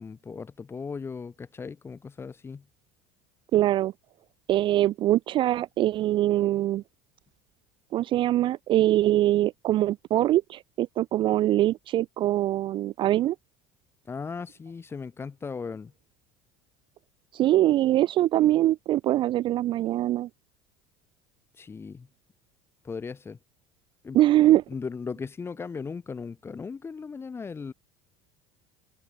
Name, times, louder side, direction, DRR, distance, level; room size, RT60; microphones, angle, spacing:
voice 1, 0.0-2.6 14.1-15.9 21.6-22.1 22.8-23.4 24.0-24.2 24.7-27.7, left 5 dB, 20° left, 1.1 m, -37 dB
voice 2, 3.5-3.9 4.5-6.8 7.9-13.4 17.3-20.3 24.1-24.6, right 14 dB, 40° right, 0.3 m, -23 dB
cardioid pair, 140°, 14 cm